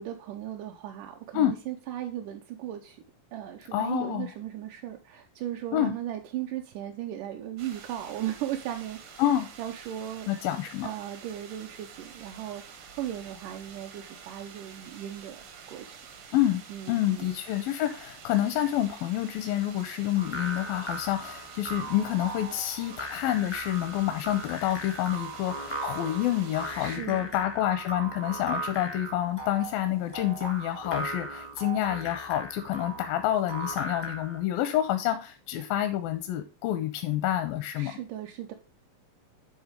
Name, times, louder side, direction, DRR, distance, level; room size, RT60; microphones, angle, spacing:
voice 1, 0.0-3.0 3.3-9.3 9.6-10.3 10.8-15.4 15.7-16.0 16.7-17.3 26.8-27.3 37.8-38.5, right 11 dB, 80° right, 3 dB, 2.0 m, -37 dB
voice 2, 3.7-4.3 5.7-6.0 9.2-9.5 10.3-10.9 16.3-37.9, left 12 dB, 85° left, 9 dB, 2.5 m, -28 dB
sound 1, 7.6-27.0, right 6 dB, 65° right, 1.4 m, -48 dB
sound 2, 20.2-34.4, right 1 dB, 30° left, 0.4 m, -38 dB
10.5 x 3.7 x 5.0 m, 0.35 s
omnidirectional pair, 4.0 m